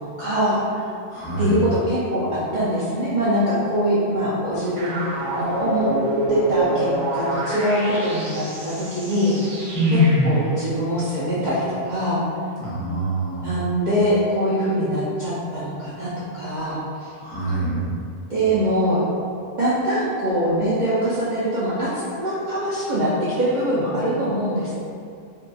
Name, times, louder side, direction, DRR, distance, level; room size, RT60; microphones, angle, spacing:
voice 1, 0.0-0.8 1.4-2.3 2.5-5.0 5.3-5.9 6.3-9.3 9.9-10.0 10.2-12.2 13.4-17.1 18.3-19.0 19.6-21.9 22.2-23.1 23.4-24.7, equal, 60° right, -10 dB, 0.5 m, -23 dB
voice 2, 1.1-1.6 9.7-10.3 12.6-13.4 17.2-17.9, left 1 dB, 25° left, -12 dB, 0.6 m, -22 dB
sound 1, 4.8-10.5, right 1 dB, 85° right, 1.0 m, -27 dB
2.7 x 2.5 x 2.2 m, 2.4 s
omnidirectional pair, 1.2 m